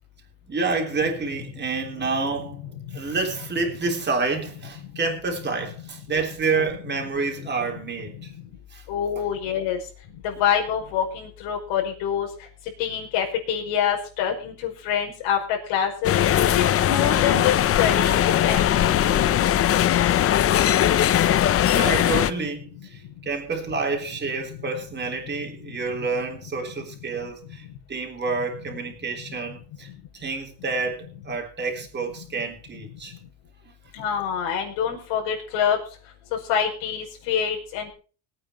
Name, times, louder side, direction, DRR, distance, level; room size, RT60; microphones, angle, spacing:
voice 1, 0.5-8.3 8.7-8.8 20.7-21.0 21.7-33.1, right 4 dB, 25° right, 3.7 m, -29 dB
voice 2, 8.9-9.8 10.2-12.3 12.8-16.1 16.5-19.3 33.9-35.8 36.3-37.9, left 8 dB, 80° left, 5.1 m, -26 dB
sound 1, 16.0-22.3, left 11 dB, 30° left, 0.5 m, -20 dB
21.0 x 9.1 x 4.4 m
cardioid pair, 130°, 45 cm